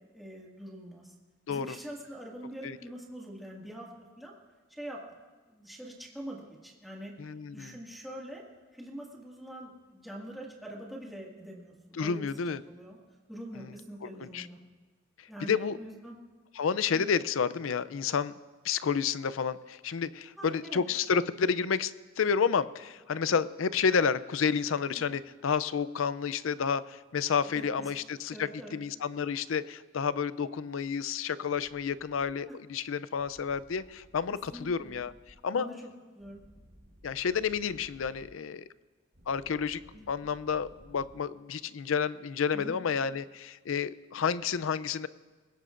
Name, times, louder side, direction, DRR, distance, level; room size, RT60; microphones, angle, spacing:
voice 1, 0.1-1.1 1.5-3.9 4.2-4.3 4.7-5.0 5.5-7.1 7.5-8.4 8.7-13.0 13.3-14.6 15.3-16.2 16.9-17.1 20.4-20.8 25.0-25.1 27.5-27.6 28.3-28.8 34.5-34.9 35.5-35.7 36.1-36.4 39.9-40.1 42.5-42.8, right 1 dB, ahead, -4 dB, 1.9 m, -44 dB
voice 2, 7.2-7.8 11.9-12.6 13.6-13.7 14.0-14.5 15.4-15.8 16.6-18.3 18.6-35.1 35.4-35.7 37.0-38.6 39.3-39.8 40.1-45.1, left 6 dB, 90° left, 16 dB, 0.5 m, -30 dB
sound 1, 33.2-35.3 36.2-38.2 39.1-41.1, equal, 60° right, 4.8 m, -57 dB
21.5 x 17.5 x 2.5 m, 1.3 s
head